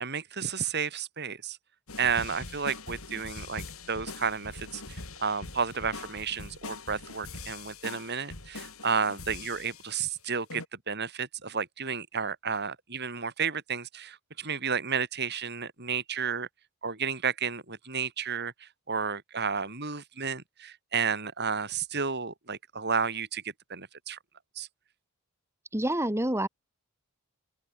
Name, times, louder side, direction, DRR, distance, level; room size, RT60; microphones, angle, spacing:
voice 1, 0.0-1.6 2.0-16.5 16.8-23.4 23.7-24.2 24.6-24.7, right 6 dB, 50° right, 4.7 m, -32 dB
sound 1, 1.9-10.1 10.5-10.7, left 3 dB, 70° left, 5.1 m, -43 dB
voice 2, 25.7-26.5, right 1 dB, 10° right, 3.4 m, -27 dB
open air
head